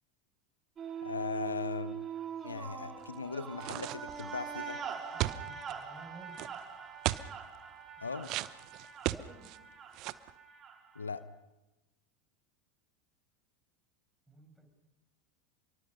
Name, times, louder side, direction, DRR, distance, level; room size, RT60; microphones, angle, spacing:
sound 1, 0.8-11.2, right 7 dB, 30° right, 4.1 m, -43 dB
voice 1, 1.0-2.0 2.4-4.8 8.0-8.3 10.9-11.2, left 4 dB, 85° left, 14 dB, 0.9 m, -38 dB
sound 2, 3.6-4.3 5.2-5.7 6.3-6.5 7.0-7.3 8.2-9.6 9.9-10.3, right 17 dB, 50° right, 0.9 m, -35 dB
voice 2, 5.1-6.5 8.0-8.3 9.0-9.5 14.3-14.7, right 2 dB, 5° right, 3 dB, 6.7 m, -54 dB
29.5 x 23.5 x 5.6 m, 1.0 s
figure-of-eight pair, 80°, 0 cm